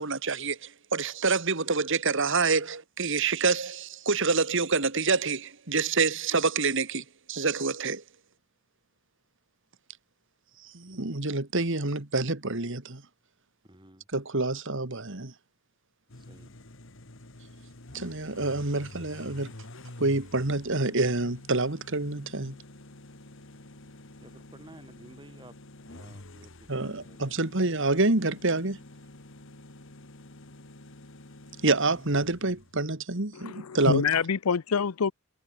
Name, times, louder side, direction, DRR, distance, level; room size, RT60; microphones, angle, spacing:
voice 1, 0.0-8.0 10.6-13.0 14.1-15.3 17.9-19.5 20.0-22.6 26.7-28.8 31.6-34.0, right 3 dB, 60° right, 2.2 m, -27 dB
voice 2, 13.7-14.0 16.2-16.5 24.2-27.2, right 1 dB, 20° right, 3.2 m, -53 dB
sound 1, 16.1-32.9, left 1 dB, 60° left, 2.4 m, -48 dB
voice 3, 33.3-35.1, left 6 dB, 90° left, 0.6 m, -26 dB
head